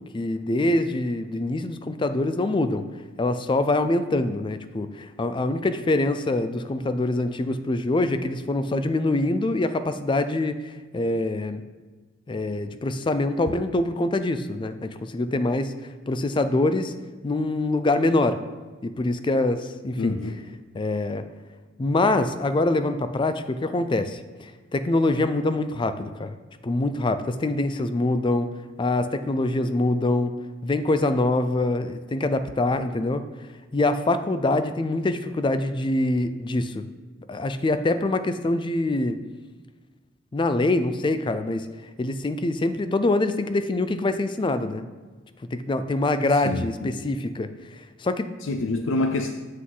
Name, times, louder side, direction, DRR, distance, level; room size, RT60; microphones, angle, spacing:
voice 1, 0.1-2.9 3.2-11.6 12.3-15.7 16.1-16.9 17.2-18.4 18.8-20.2 20.7-21.3 21.8-26.4 26.6-28.5 28.8-30.3 30.6-33.3 33.7-36.9 37.3-39.2 40.3-41.7 42.0-44.8 45.5-47.5 48.0-48.3, left 2 dB, 25° left, 10 dB, 0.4 m, -24 dB
voice 2, 20.0-20.4 46.4-46.9 48.4-49.4, left 2 dB, 80° left, 5 dB, 0.5 m, -27 dB
7.5 x 6.1 x 3.8 m, 1.3 s
head